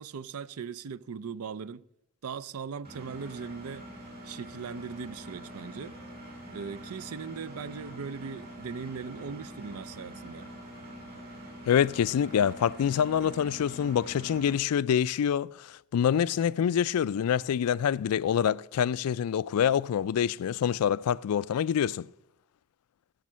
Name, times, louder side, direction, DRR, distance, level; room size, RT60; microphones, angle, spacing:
voice 1, 0.0-1.8 2.2-3.9 4.2-6.0 6.5-10.5, right 6 dB, 75° right, 0.5 m, -39 dB
Engine, 2.8-14.5, right 1 dB, 45° right, 5.2 m, -45 dB
voice 2, 11.7-22.1, left 8 dB, 80° left, 0.3 m, -26 dB
16.5 x 6.4 x 6.1 m
head